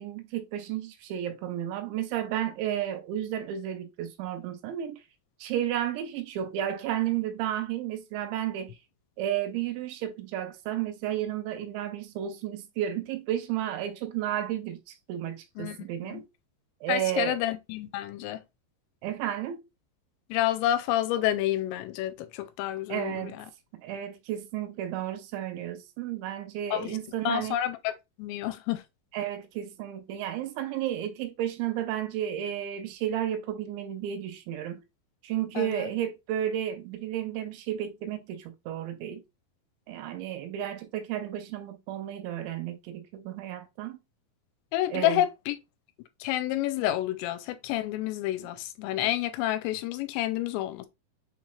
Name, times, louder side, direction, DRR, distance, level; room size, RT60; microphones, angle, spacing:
voice 1, 0.0-5.0 5.4-8.7 9.2-16.3 16.8-17.4 19.0-19.6 22.9-23.4 23.8-27.6 29.1-34.8 35.2-39.2 39.9-44.0 44.9-45.2, right 11 dB, 90° right, 3.2 m, -32 dB
voice 2, 16.9-18.4 20.3-23.5 26.7-27.0 27.3-27.9 28.2-28.8 35.6-35.9 44.7-45.6 46.2-50.9, left 13 dB, 85° left, 2.7 m, -29 dB
7.0 x 3.1 x 2.3 m
omnidirectional pair, 5.1 m